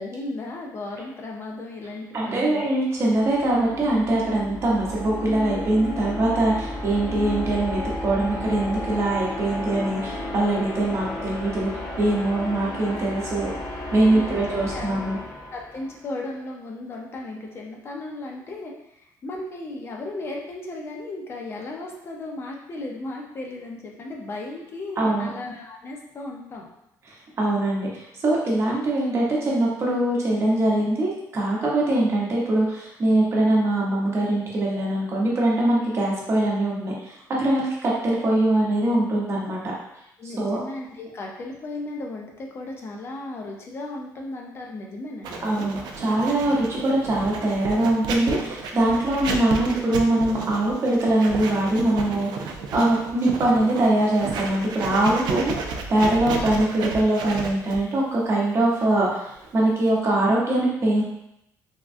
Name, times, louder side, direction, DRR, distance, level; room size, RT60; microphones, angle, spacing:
voice 1, 0.0-2.7 11.2-11.3 14.1-15.1 15.5-26.7 40.2-45.7, left 2 dB, 35° left, 0 dB, 0.5 m, -35 dB
voice 2, 2.1-11.7 12.0-13.5 13.9-15.2 25.0-25.3 27.4-39.6 40.4-40.6 45.4-55.5 55.9-61.0, right 1 dB, 40° right, -4 dB, 0.8 m, -22 dB
sound 1, 2.9-16.1, left 1 dB, 50° left, 0.9 m, -33 dB
Writing, 45.2-60.0, right 4 dB, 80° right, 0.4 m, -33 dB
3.5 x 2.2 x 2.5 m, 0.81 s
cardioid pair, 140°, 7 cm